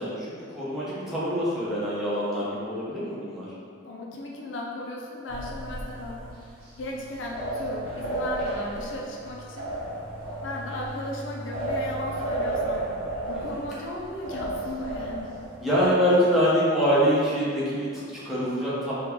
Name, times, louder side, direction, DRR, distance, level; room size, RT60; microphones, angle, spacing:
voice 1, 0.0-3.5 13.3-13.6 15.6-18.9, equal, ahead, -9 dB, 0.7 m, -25 dB
voice 2, 3.8-6.3 6.8-9.7 10.4-12.8 13.3-15.4, left 1 dB, 70° left, -1 dB, 0.4 m, -36 dB
sound 1, 5.3-15.9, right 1 dB, 90° right, 0.9 m, -33 dB
3.6 x 2.3 x 3.0 m, 2.2 s
head